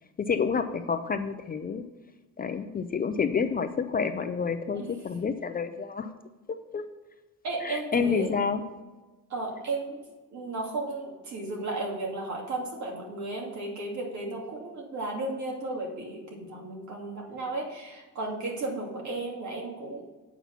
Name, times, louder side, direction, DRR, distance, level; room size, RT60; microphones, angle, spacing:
voice 1, 0.2-1.9 2.4-6.1 6.7-6.8 7.6-8.6, left 6 dB, 30° left, 8 dB, 0.4 m, -29 dB
voice 2, 7.4-8.3 9.3-10.0 10.3-20.0, right 2 dB, 60° right, -1 dB, 2.6 m, -34 dB
8.2 x 5.8 x 7.2 m, 1.2 s
cardioid pair, 160°, 32 cm